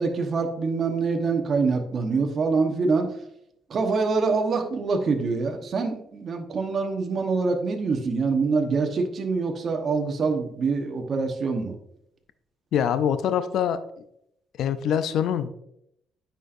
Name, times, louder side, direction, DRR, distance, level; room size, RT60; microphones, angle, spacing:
voice 1, 0.0-3.1 3.7-11.7, right 4 dB, 50° right, 4 dB, 1.1 m, -25 dB
voice 2, 12.7-13.8 14.6-15.5, left 8 dB, 75° left, 11 dB, 0.4 m, -24 dB
9.3 x 4.4 x 2.6 m, 0.75 s
cardioid pair, 90°, 0 cm